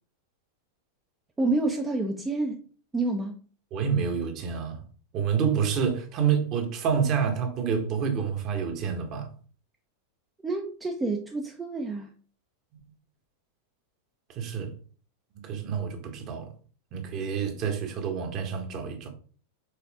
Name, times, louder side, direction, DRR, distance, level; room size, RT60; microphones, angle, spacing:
voice 1, 1.4-2.6 2.9-3.4 10.4-12.1, right 2 dB, 15° right, 0.8 m, -28 dB
voice 2, 3.7-4.8 5.1-9.3 14.3-14.7 15.3-16.5 16.9-19.1, right 7 dB, 35° right, 1.5 m, -28 dB
6.6 x 4.4 x 3.6 m
figure-of-eight pair, 90°, 0 cm